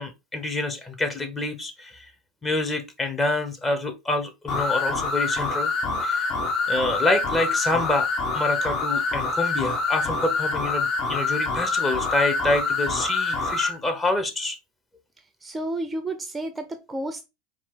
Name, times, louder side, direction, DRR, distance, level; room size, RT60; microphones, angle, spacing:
voice 1, 0.0-2.1 2.4-5.7 6.0-6.3 6.7-14.6, left 2 dB, 20° left, 1.0 m, -27 dB
sound 1, 4.5-13.7, left 4 dB, 45° left, 1.2 m, -26 dB
voice 2, 15.4-17.2, right 1 dB, 15° right, 0.6 m, -31 dB
4.5 x 2.5 x 3.7 m
hypercardioid pair, 90°, 0 cm